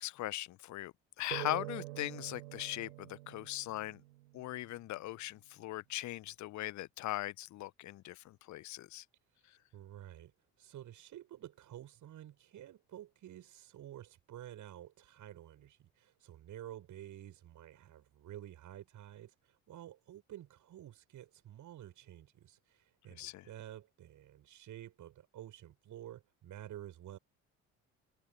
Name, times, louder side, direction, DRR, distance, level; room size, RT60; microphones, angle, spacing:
voice 1, 0.0-4.0 4.3-9.0 23.2-23.4, left 16 dB, 50° left, 1.1 m, -40 dB
sound 1, 1.3-4.7, right 19 dB, 70° right, 5.2 m, -46 dB
voice 2, 9.3-27.2, right 12 dB, 50° right, 7.8 m, -51 dB
figure-of-eight pair, 50°, 38 cm